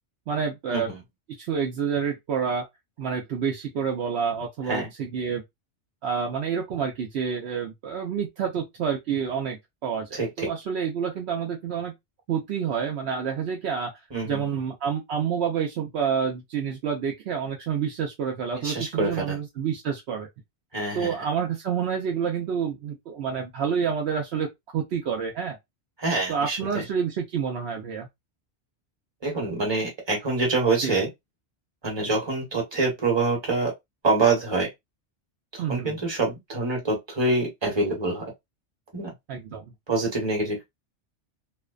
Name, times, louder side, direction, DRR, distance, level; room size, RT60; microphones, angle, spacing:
voice 1, 0.3-0.9 1.4-2.7 3.0-5.4 6.0-11.9 12.3-13.9 14.3-20.3 20.9-24.5 24.7-25.6 26.3-28.1 30.8-31.0 35.6-35.9 39.3-39.6, right 7 dB, 70° right, 0.8 m, -28 dB
voice 2, 10.1-10.5 14.1-14.4 18.6-19.4 20.7-21.1 26.0-26.8 29.2-31.1 31.8-33.7 34.0-34.7 35.5-38.3 38.9-39.1 39.9-40.6, right 3 dB, 25° right, 1.0 m, -26 dB
2.5 x 2.1 x 2.3 m
omnidirectional pair, 1.2 m